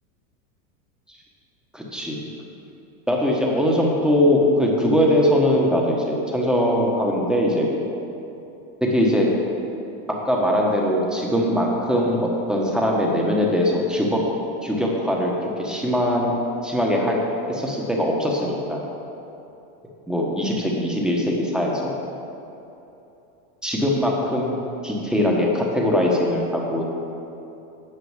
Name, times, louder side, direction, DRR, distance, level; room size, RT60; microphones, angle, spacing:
voice 1, 1.7-2.2 3.1-7.7 8.8-9.3 10.2-14.2 14.6-16.3 16.6-17.2 17.4-18.8 20.1-21.9 23.6-26.8, equal, ahead, -2 dB, 1.2 m, -21 dB
9.7 x 6.8 x 7.2 m, 2.9 s
supercardioid pair, 150°, 42 cm